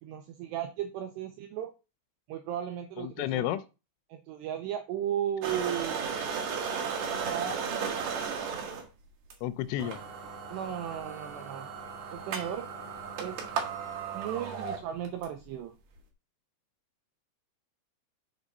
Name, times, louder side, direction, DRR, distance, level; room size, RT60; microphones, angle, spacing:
voice 1, 0.0-1.7 2.3-3.5 4.1-6.2 7.3-8.0 10.5-11.7 12.1-12.7 13.2-13.4 14.1-15.7, right 10 dB, 85° right, 6 dB, 2.4 m, -35 dB
voice 2, 3.0-3.6 9.4-10.0, left 13 dB, 80° left, 12 dB, 3.0 m, -31 dB
sound 1, 5.4-8.8 9.3-9.4 9.8-15.3, right 6 dB, 65° right, 2.6 m, -35 dB
7.3 x 4.9 x 5.4 m, 0.30 s
omnidirectional pair, 5.7 m